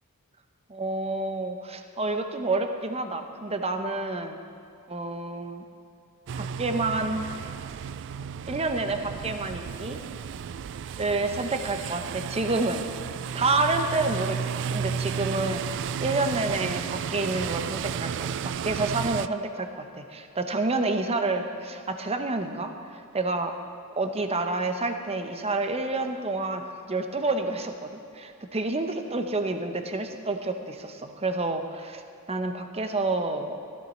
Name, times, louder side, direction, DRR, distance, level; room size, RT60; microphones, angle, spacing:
voice 1, 0.7-4.4 4.9-5.6 6.4-7.3 8.5-10.0 11.0-12.8 13.3-15.6 16.0-23.5 23.9-32.0 32.3-33.6, right 2 dB, 30° right, 6 dB, 0.9 m, -29 dB
sound 1, 6.3-19.3, right 7 dB, 55° right, 0.3 m, -33 dB
15.0 x 13.0 x 4.4 m, 2.6 s
head